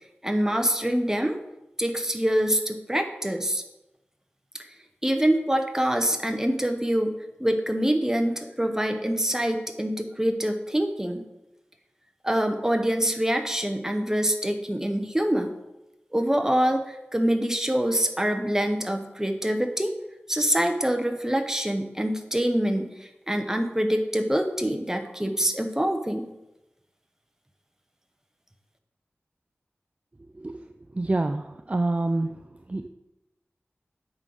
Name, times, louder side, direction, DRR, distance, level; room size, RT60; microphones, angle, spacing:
voice 1, 0.2-1.4 1.8-3.6 5.0-7.1 7.4-11.2 12.2-15.5 16.1-19.9 20.3-26.3, right 1 dB, 10° right, 6 dB, 0.9 m, -25 dB
voice 2, 31.0-31.4 31.7-32.3 32.7-32.9, right 2 dB, 30° right, 7 dB, 0.4 m, -25 dB
8.7 x 3.9 x 6.1 m, 0.95 s
wide cardioid pair, 75°, 4 cm